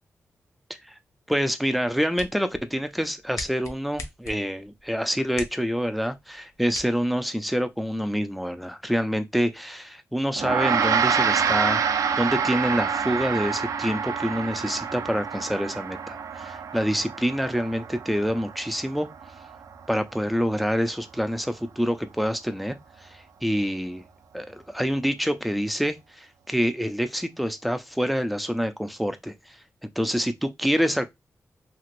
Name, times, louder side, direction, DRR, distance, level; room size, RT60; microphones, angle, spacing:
voice 1, 1.3-11.8 12.2-19.1 19.9-24.0 24.3-29.6 29.8-31.1, equal, ahead, 0.3 m, -27 dB
sound 1, 1.7-7.8, left 3 dB, 70° left, 0.6 m, -43 dB
Gong, 10.4-20.0, right 6 dB, 90° right, 0.4 m, -27 dB
3.0 x 2.9 x 2.4 m
wide cardioid pair, 135°, 6 cm